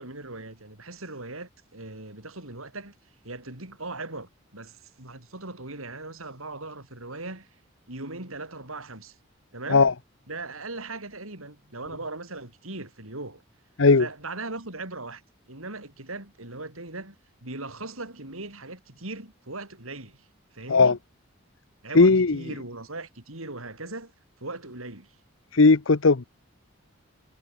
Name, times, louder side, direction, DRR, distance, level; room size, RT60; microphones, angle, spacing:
voice 1, 0.0-3.0 3.2-7.6 7.9-9.2 9.5-9.9 10.3-13.4 14.0-15.2 15.5-17.2 17.4-21.0 21.8-24.1 24.4-25.2, right 2 dB, 85° right, 6.4 m, -39 dB
voice 2, 21.9-22.4 25.5-26.3, left 4 dB, 70° left, 0.8 m, -17 dB
head